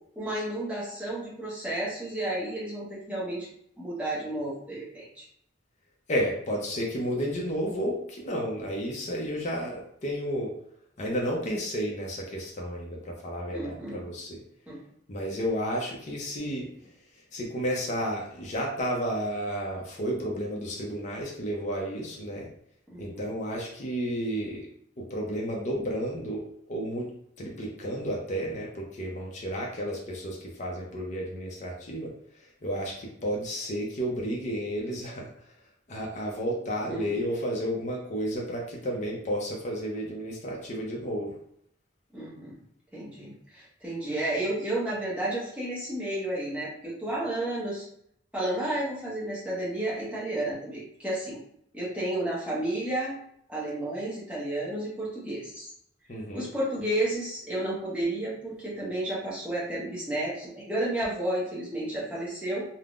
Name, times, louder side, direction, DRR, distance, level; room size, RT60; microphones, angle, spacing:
voice 1, 0.2-3.5 3.8-5.2 13.5-14.0 14.7-14.8 22.9-23.3 36.9-37.1 42.1-42.5 42.9-47.8 48.3-51.4 51.7-53.2 53.5-55.7 56.3-62.7, right 1 dB, 5° right, -7 dB, 0.8 m, -32 dB
voice 2, 6.1-10.5 11.0-14.4 15.1-16.7 17.3-22.5 23.0-24.7 25.0-27.1 27.4-32.1 32.6-35.3 35.9-41.4 56.1-56.5, equal, 40° left, -2 dB, 0.6 m, -32 dB
3.4 x 2.1 x 2.4 m, 0.70 s
head